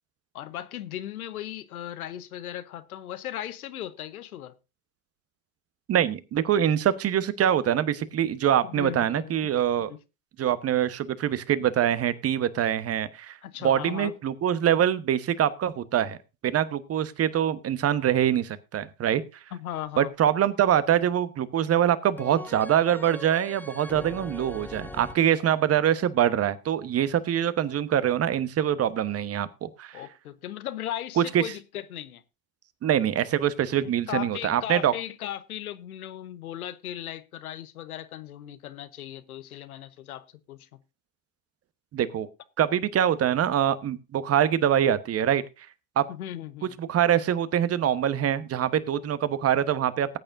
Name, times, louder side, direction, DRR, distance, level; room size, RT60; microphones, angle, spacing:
voice 1, 0.3-4.5 8.6-9.3 9.9-10.0 13.4-14.1 19.5-20.1 29.9-32.2 33.8-40.8 46.1-46.8, left 12 dB, 85° left, 1.0 m, -37 dB
voice 2, 5.9-9.9 10.4-13.4 13.6-16.2 16.4-19.2 20.0-30.0 31.2-31.4 32.8-34.9 41.9-42.3 42.6-45.4 46.0-46.1 46.8-50.2, right 10 dB, 35° right, 1.1 m, -24 dB
sound 1, 22.2-25.2, left 1 dB, 5° left, 0.7 m, -41 dB
19.0 x 8.8 x 2.6 m
hypercardioid pair, 75°, 42 cm